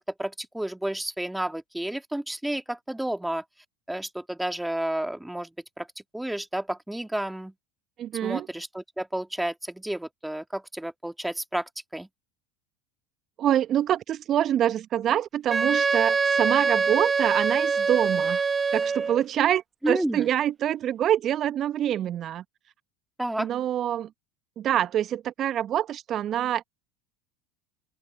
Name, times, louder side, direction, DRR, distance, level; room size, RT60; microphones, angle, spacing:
voice 1, 0.2-3.4 3.9-5.5 5.8-5.9 6.1-7.5 8.2-12.1 19.8-20.3 23.2-23.5, right 1 dB, 5° right, 2.4 m, -31 dB
voice 2, 8.0-8.5 13.4-18.5 18.7-22.4 23.4-24.1 24.6-26.7, right 11 dB, 40° right, 0.9 m, -25 dB
Wind instrument woodwind instrument, 15.5-19.2, right 5 dB, 20° right, 1.5 m, -24 dB
open air
hypercardioid pair, 75°, 0 cm